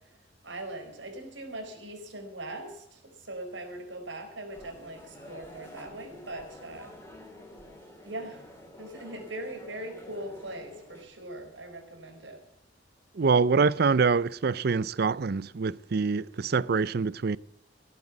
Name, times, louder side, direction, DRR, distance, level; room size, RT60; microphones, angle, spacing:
voice 1, 0.4-6.9 8.0-8.4 8.8-12.4, right 1 dB, 90° right, 4.4 m, -40 dB
sound 1, 4.5-11.0, left 1 dB, 15° left, 3.4 m, -49 dB
voice 2, 13.2-17.4, right 5 dB, 55° right, 0.5 m, -25 dB
17.0 x 9.5 x 7.2 m
head